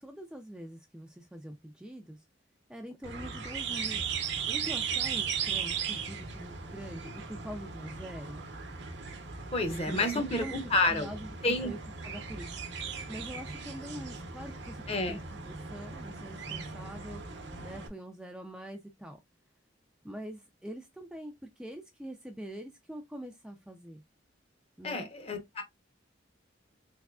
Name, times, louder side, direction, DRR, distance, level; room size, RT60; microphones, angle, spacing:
voice 1, 0.0-2.2 2.7-4.0 4.5-8.5 9.7-10.5 10.8-12.6 13.1-15.2 15.4-19.2 20.0-24.0 24.8-25.1, equal, 5° right, 0.4 m, -44 dB
sound 1, 3.0-17.9, right 6 dB, 65° right, 0.8 m, -37 dB
voice 2, 9.5-11.1 11.4-11.7 14.9-15.2 24.8-25.6, left 2 dB, 35° left, 0.8 m, -29 dB
3.6 x 3.1 x 2.3 m
head